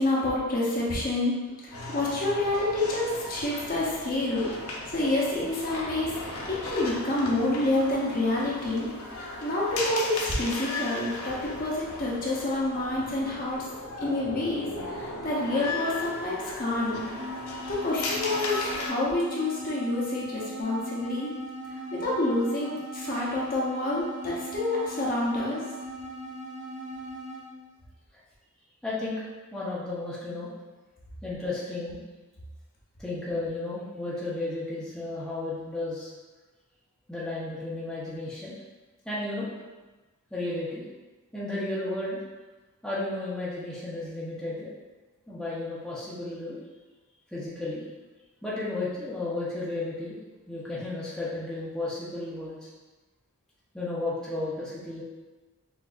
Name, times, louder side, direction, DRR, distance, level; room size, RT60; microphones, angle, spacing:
voice 1, 0.0-4.5 4.9-6.2 6.5-8.9 9.4-13.6 14.0-17.0 17.7-21.3 21.9-25.6, left 2 dB, 40° left, -6 dB, 0.9 m, -28 dB
sound 1, 1.7-18.9, left 2 dB, 80° left, 0.7 m, -36 dB
sound 2, 17.2-27.6, right 1 dB, 30° right, 0.7 m, -39 dB
voice 2, 28.8-29.2 29.5-30.5 31.2-32.0 33.0-36.1 37.1-38.5 39.0-39.5 40.3-40.8 41.3-42.2 42.8-44.7 45.3-46.6 47.3-47.8 48.4-50.2 50.5-52.7 53.7-55.0, left 2 dB, 5° left, -9 dB, 0.8 m, -33 dB
5.9 x 2.6 x 2.5 m, 1.2 s
head